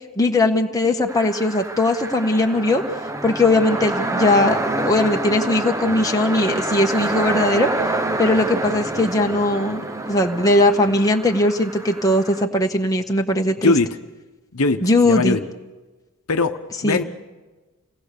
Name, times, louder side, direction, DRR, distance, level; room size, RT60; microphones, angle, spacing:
voice 1, 0.2-2.8 3.2-4.6 4.8-7.7 8.2-13.7 14.8-15.4 16.8-17.0, left 2 dB, 15° left, 2 dB, 1.3 m, -19 dB
sound 1, 1.1-12.4, right 2 dB, 15° right, 0.8 m, -27 dB
voice 2, 14.5-15.4 16.3-17.0, left 3 dB, 70° left, 7 dB, 1.0 m, -20 dB
29.0 x 18.5 x 6.8 m, 1.2 s
head